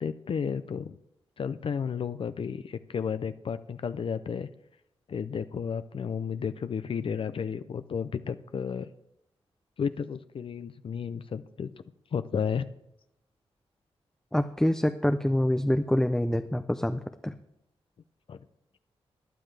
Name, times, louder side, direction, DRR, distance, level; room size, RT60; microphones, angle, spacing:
voice 1, 0.0-1.0 1.4-4.5 5.1-8.9 9.8-11.7 12.1-12.7 18.3-18.4, left 6 dB, 55° left, 12 dB, 0.5 m, -32 dB
voice 2, 14.3-17.4, left 1 dB, 5° left, 8 dB, 0.5 m, -26 dB
16.5 x 10.0 x 3.3 m, 0.82 s
cardioid pair, 85°, 11 cm